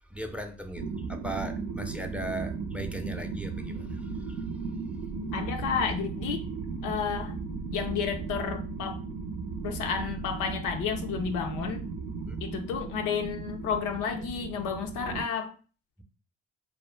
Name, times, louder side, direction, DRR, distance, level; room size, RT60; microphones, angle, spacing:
voice 1, 0.1-4.4 12.2-12.4, right 1 dB, 5° right, 0.5 m, -38 dB
sound 1, 0.8-15.2, right 4 dB, 75° right, 0.5 m, -36 dB
voice 2, 5.3-6.5 6.8-7.3 7.7-9.0 9.6-11.8 12.4-15.5, left 6 dB, 85° left, 0.5 m, -31 dB
2.4 x 2.2 x 3.2 m
supercardioid pair, 50°, 31 cm